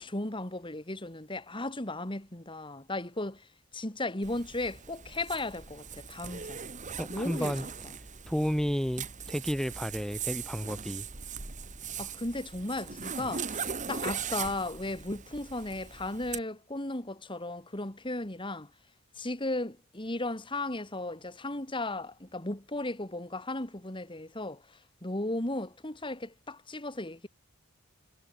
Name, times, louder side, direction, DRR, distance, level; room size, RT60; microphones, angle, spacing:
voice 1, 0.0-3.5 3.7-6.6 7.1-7.9 12.0-18.7 19.2-27.3, left 2 dB, 25° left, 2.4 m, -36 dB
Zipper (clothing), 4.2-16.4, right 6 dB, 35° right, 2.1 m, -40 dB
voice 2, 7.0-7.6 8.3-11.1, equal, ahead, 1.1 m, -32 dB
head